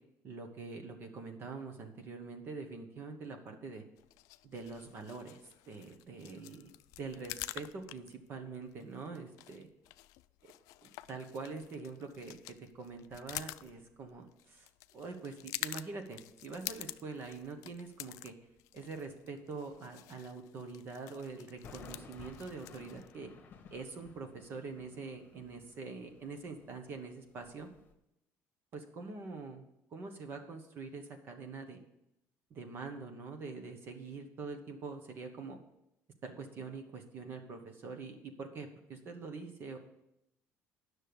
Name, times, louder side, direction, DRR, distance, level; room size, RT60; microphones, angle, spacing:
voice 1, 0.2-3.8 4.4-5.4 5.7-6.7 7.0-9.7 10.8-18.3 18.7-23.3 23.7-27.7 28.7-29.6 29.9-31.8 32.5-35.6 36.2-39.8, right 4 dB, 40° right, 6 dB, 1.2 m, -44 dB
sound 1, 4.0-23.1, left 17 dB, 85° left, 0.4 m, -48 dB
sound 2, 17.1-18.1 18.4-18.8 19.1-19.2 19.6-19.7 21.2-27.9, left 5 dB, 35° left, 1.3 m, -56 dB
9.9 x 6.4 x 7.0 m, 0.83 s
cardioid pair, 160°, 6 cm